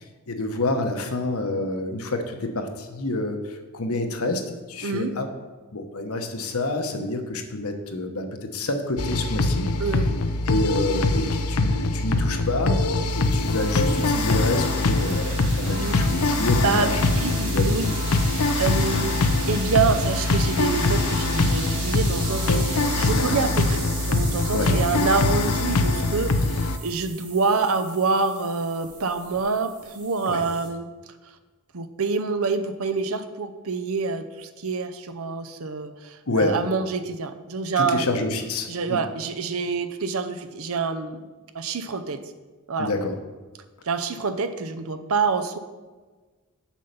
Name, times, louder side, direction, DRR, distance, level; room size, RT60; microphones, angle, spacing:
voice 1, 0.3-4.4 4.7-5.3 5.7-9.7 10.5-12.8 13.1-17.1 17.4-17.9 23.2-23.4 24.5-24.7 30.3-30.4 36.3-36.6 37.8-39.0 42.8-43.1, left 2 dB, 70° left, 5 dB, 1.1 m, -28 dB
voice 2, 4.8-5.1 9.8-10.1 12.3-12.4 15.8-16.0 16.3-16.9 17.1-17.9 18.6-19.1 19.5-30.9 31.7-38.2 38.7-41.2 41.5-42.2 42.7-42.9 43.9-45.6, right 4 dB, 70° right, 9 dB, 0.7 m, -26 dB
sound 1, 9.0-26.8, left 2 dB, 85° left, 0.7 m, -23 dB
sound 2, 12.5-30.7, right 4 dB, 35° right, 2.3 m, -37 dB
7.4 x 5.5 x 6.8 m, 1.3 s
head